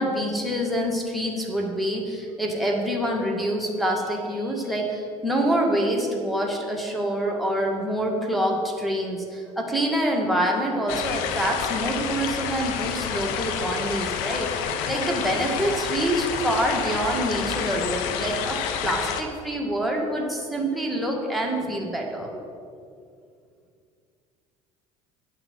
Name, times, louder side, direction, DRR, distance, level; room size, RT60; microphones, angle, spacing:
voice 1, 0.0-22.4, right 1 dB, ahead, -1 dB, 2.2 m, -26 dB
sound 1, 10.9-19.2, left 7 dB, 65° left, 0.8 m, -29 dB
8.8 x 6.0 x 7.8 m, 2.3 s
figure-of-eight pair, 60°, 18 cm